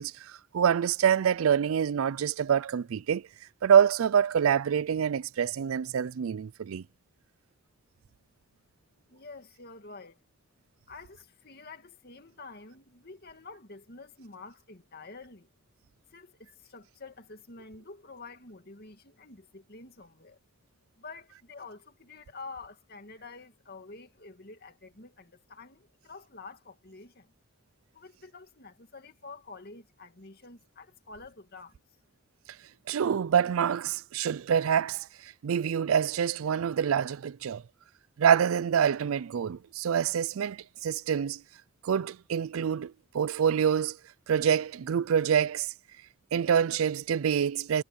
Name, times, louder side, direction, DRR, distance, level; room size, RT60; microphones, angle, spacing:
voice 1, 0.0-3.3 3.6-6.8 32.9-37.6 38.2-41.4 41.8-44.0 44.3-45.7 46.3-47.8, right 8 dB, 80° right, 0.4 m, -26 dB
voice 2, 9.1-10.2 10.9-15.5 16.1-20.4 21.0-27.3 27.9-31.8, left 3 dB, 50° left, 2.2 m, -48 dB
head